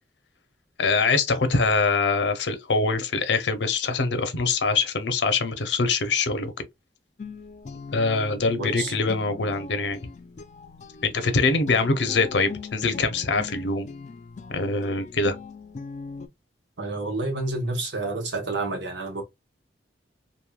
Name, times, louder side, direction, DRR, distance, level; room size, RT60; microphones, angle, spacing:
voice 1, 0.8-6.6 7.9-10.0 11.0-13.9 14.5-15.3, left 3 dB, 85° left, 0.7 m, -24 dB
Guitar, 7.2-16.3, left 4 dB, 40° left, 0.3 m, -40 dB
voice 2, 8.6-8.9 16.8-19.2, right 2 dB, 90° right, 1.1 m, -29 dB
3.1 x 2.6 x 2.3 m
head